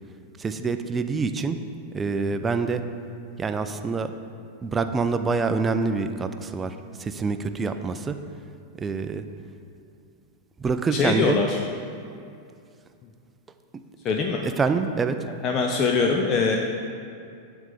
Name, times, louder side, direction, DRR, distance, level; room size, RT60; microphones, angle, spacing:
voice 1, 0.4-1.6 1.9-2.8 3.4-4.1 4.6-8.2 8.8-9.2 10.6-11.4 14.4-15.2, right 4 dB, 15° right, 8 dB, 0.5 m, -26 dB
voice 2, 10.9-11.6 14.0-14.4 15.4-16.6, left 4 dB, 30° left, 2 dB, 0.6 m, -23 dB
10.5 x 3.6 x 6.7 m, 2.4 s
figure-of-eight pair, 90°, 0 cm